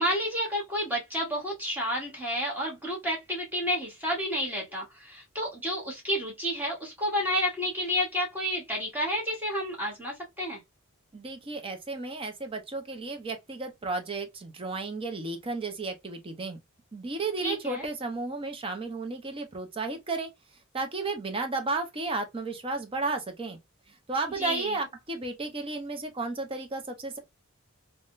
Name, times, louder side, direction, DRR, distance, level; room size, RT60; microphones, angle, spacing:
voice 1, 0.0-10.6 17.4-17.9 24.4-24.8, equal, 10° right, 1.0 m, -30 dB
voice 2, 11.1-16.6 16.9-20.3 20.7-23.6 23.9-27.2, right 3 dB, 25° right, 0.6 m, -33 dB
3.5 x 2.1 x 2.4 m
head